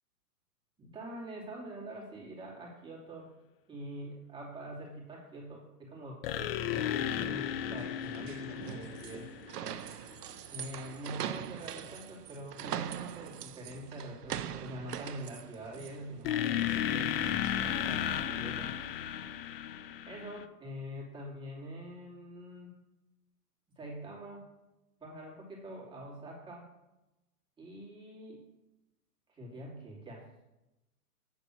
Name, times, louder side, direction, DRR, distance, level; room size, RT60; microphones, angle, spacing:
voice 1, 0.8-3.3 3.7-9.3 10.5-18.7 20.1-22.8 23.8-24.4 25.0-26.7 27.6-28.4 29.3-30.2, right 1 dB, 10° right, -4 dB, 2.7 m, -45 dB
sound 1, 6.2-9.9 16.2-20.4, left 10 dB, 40° left, 0.5 m, -34 dB
sound 2, 7.8-18.2, right 10 dB, 80° right, 0.7 m, -43 dB
8.6 x 4.0 x 6.8 m, 0.98 s
hypercardioid pair, 130°, 46 cm